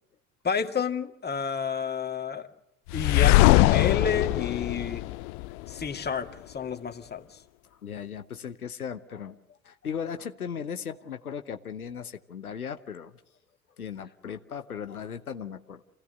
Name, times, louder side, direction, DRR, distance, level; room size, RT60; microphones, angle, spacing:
voice 1, 0.4-2.5 2.9-5.1 5.7-7.4, left 6 dB, 25° left, 5 dB, 2.2 m, -30 dB
sound 1, 2.9-5.9, left 19 dB, 60° left, 0.7 m, -21 dB
voice 2, 7.7-13.2 13.8-15.8, left 7 dB, 90° left, 8 dB, 1.0 m, -37 dB
28.0 x 16.5 x 6.6 m, 0.85 s
figure-of-eight pair, 65°, 42 cm